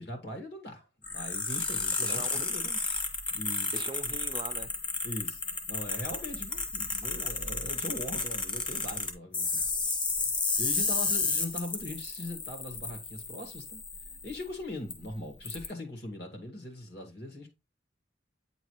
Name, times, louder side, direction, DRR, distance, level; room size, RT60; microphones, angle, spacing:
voice 1, 0.0-2.8 3.3-3.7 5.0-5.4 5.7-13.8 14.2-17.5, left 1 dB, 60° left, 2.1 m, -41 dB
sound 1, 1.0-14.4 14.9-15.0 15.4-15.7, left 3 dB, 25° left, 1.1 m, -32 dB
voice 2, 2.0-2.5 3.7-4.8 7.0-7.3 9.4-9.7, right 2 dB, 25° right, 0.4 m, -42 dB
8.8 x 3.9 x 3.1 m
head